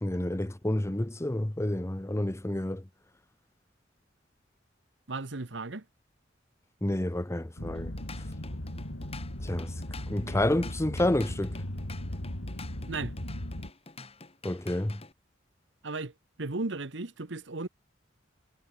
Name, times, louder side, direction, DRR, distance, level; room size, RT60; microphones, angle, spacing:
voice 1, 0.0-2.8 6.8-7.9 9.4-9.7 10.1-11.6 14.4-15.0, left 1 dB, 15° left, 0.8 m, -29 dB
voice 2, 5.1-5.8 12.9-13.1 15.8-16.1 16.4-17.7, right 3 dB, 70° right, 1.3 m, -35 dB
sound 1, 7.6-13.7, left 1 dB, 80° left, 3.0 m, -37 dB
Drum kit / Drum, 7.7-15.1, left 4 dB, 35° left, 3.7 m, -48 dB
head